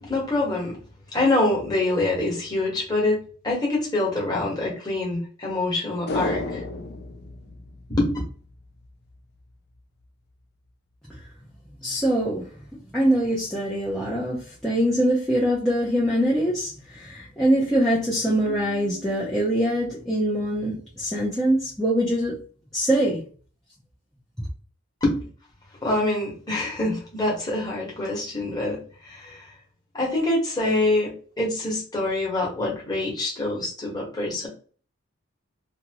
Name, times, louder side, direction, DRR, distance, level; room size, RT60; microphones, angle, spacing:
voice 1, 0.0-0.8 1.1-6.6 7.9-8.2 25.0-25.2 25.8-29.4 29.9-34.5, left 2 dB, 20° left, 1.3 m, -25 dB
sound 1, 6.1-8.5 8.8-8.9, left 2 dB, 50° left, 0.4 m, -32 dB
voice 2, 11.8-22.4 22.7-23.2, right 1 dB, ahead, 0.7 m, -23 dB
Keyboard (musical), 18.5-21.1, right 2 dB, 60° right, 0.4 m, -45 dB
2.8 x 2.6 x 2.9 m
head